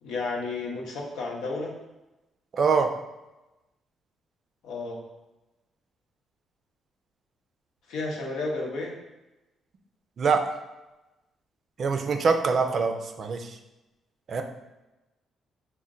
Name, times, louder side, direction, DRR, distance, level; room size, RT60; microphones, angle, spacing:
voice 1, 0.0-1.7 4.6-5.0 7.9-8.9, left 3 dB, 85° left, -2 dB, 0.8 m, -32 dB
voice 2, 2.6-2.9 10.2-10.5 11.8-13.4 14.3-14.4, right 5 dB, 50° right, 6 dB, 0.4 m, -24 dB
4.3 x 2.1 x 3.7 m, 1.0 s
cardioid pair, 90°, 0 cm